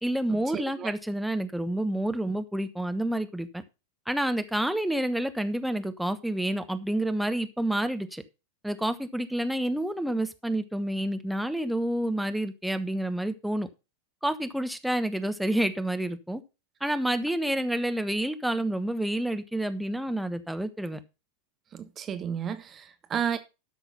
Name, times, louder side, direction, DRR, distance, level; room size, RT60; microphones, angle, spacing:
voice 1, 0.0-3.6 4.1-8.2 8.6-13.7 14.2-16.4 16.8-21.0, right 1 dB, ahead, 1.1 m, -29 dB
voice 2, 0.5-0.9 21.7-23.4, right 8 dB, 25° right, 0.9 m, -32 dB
12.5 x 6.1 x 5.4 m
figure-of-eight pair, 90°, 0 cm